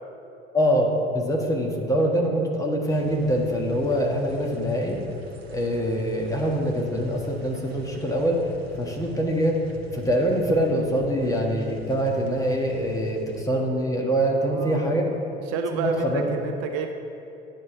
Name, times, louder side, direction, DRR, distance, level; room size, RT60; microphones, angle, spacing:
voice 1, 0.5-5.0 5.5-9.6 9.9-15.0 15.7-16.3, equal, 10° left, -1 dB, 1.6 m, -24 dB
sound 1, 2.9-13.4, right 1 dB, 85° right, 0.8 m, -43 dB
voice 2, 14.3-15.0 15.5-16.9, right 5 dB, 50° right, 5 dB, 0.7 m, -30 dB
9.6 x 5.2 x 6.9 m, 2.8 s
figure-of-eight pair, 65°, 31 cm